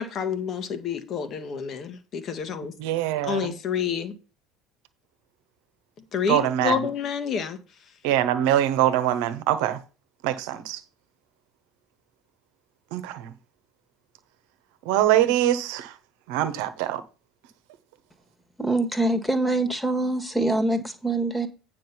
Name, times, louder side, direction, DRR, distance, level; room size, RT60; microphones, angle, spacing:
voice 1, 0.0-2.7 3.2-4.1 6.1-7.6, left 7 dB, 45° left, 1.5 m, -28 dB
voice 2, 2.8-3.6 6.3-6.8 8.0-9.8 10.2-10.8 12.9-13.3 14.8-15.9 16.3-17.0, right 12 dB, 65° right, 1.1 m, -23 dB
voice 3, 18.6-21.5, right 2 dB, 5° left, 1.7 m, -24 dB
9.2 x 5.2 x 5.6 m
figure-of-eight pair, 60°, 0 cm